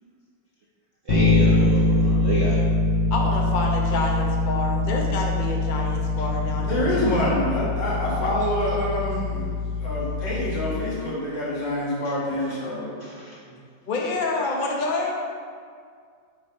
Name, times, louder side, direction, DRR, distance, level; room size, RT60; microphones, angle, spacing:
Bass guitar, 1.1-11.0, left 2 dB, 85° left, 1.9 m, -23 dB
voice 1, 1.1-2.6 12.5-12.6 13.0-13.4, right 2 dB, 60° right, -3 dB, 0.7 m, -29 dB
voice 2, 3.1-7.4 13.8-15.1, left 2 dB, 45° left, 0 dB, 0.6 m, -28 dB
voice 3, 6.6-9.5 9.8-13.0, left 1 dB, 70° left, -8 dB, 2.7 m, -26 dB
7.9 x 4.1 x 5.4 m, 2.1 s
omnidirectional pair, 2.0 m